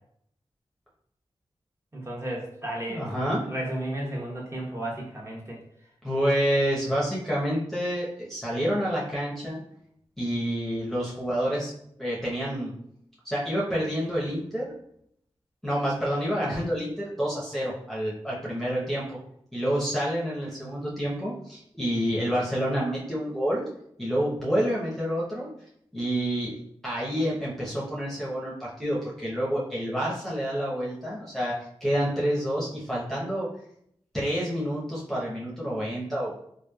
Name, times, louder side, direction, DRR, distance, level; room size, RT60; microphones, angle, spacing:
voice 1, 1.9-3.1 3.4-5.6, right 1 dB, 25° right, -3 dB, 1.0 m, -33 dB
voice 2, 2.9-3.4 6.0-9.6 10.2-11.7 12.0-12.7 13.2-14.7 15.6-19.2 19.5-23.6 24.0-25.5 25.9-26.5 26.8-33.5 34.1-36.4, equal, 5° left, -6 dB, 0.9 m, -28 dB
3.1 x 2.3 x 2.3 m, 0.70 s
cardioid pair, 40°, 10 cm